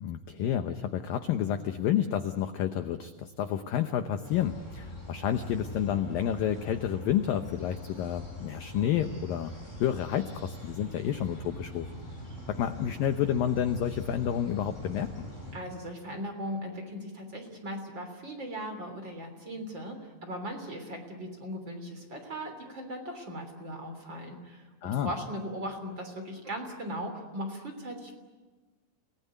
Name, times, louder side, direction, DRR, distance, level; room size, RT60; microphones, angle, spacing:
voice 1, 0.0-9.5 9.8-11.9 12.5-15.3 24.8-25.1, left 10 dB, 80° left, 8 dB, 2.0 m, -30 dB
sound 1, 4.2-15.5, left 1 dB, 5° left, 7.2 m, -43 dB
voice 2, 15.5-28.1, equal, 25° right, 4 dB, 3.3 m, -38 dB
30.0 x 18.5 x 9.5 m, 1.3 s
omnidirectional pair, 5.4 m